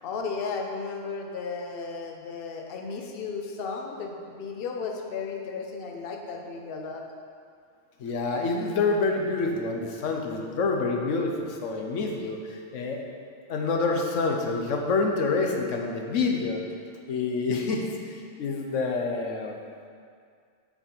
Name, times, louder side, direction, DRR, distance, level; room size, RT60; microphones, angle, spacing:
voice 1, 0.0-7.0, left 5 dB, 55° left, 2 dB, 0.9 m, -34 dB
voice 2, 8.0-13.0 13.5-16.6 17.1-19.6, left 3 dB, 90° left, 2 dB, 1.1 m, -27 dB
6.9 x 5.8 x 4.4 m, 2.2 s
omnidirectional pair, 1.3 m